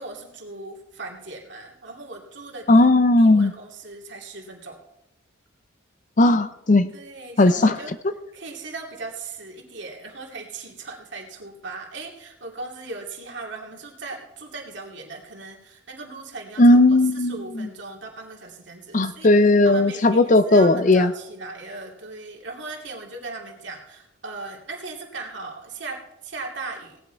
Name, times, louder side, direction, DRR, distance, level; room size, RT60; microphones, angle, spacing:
voice 1, 0.0-2.9 3.2-4.8 6.9-7.9 8.3-19.3 19.6-27.0, right 3 dB, 60° right, 0 dB, 2.6 m, -38 dB
voice 2, 2.7-3.5 6.2-6.9 7.4-7.7 16.6-17.7 18.9-21.1, left 2 dB, 40° left, 12 dB, 0.5 m, -16 dB
17.5 x 10.0 x 4.5 m, 0.89 s
head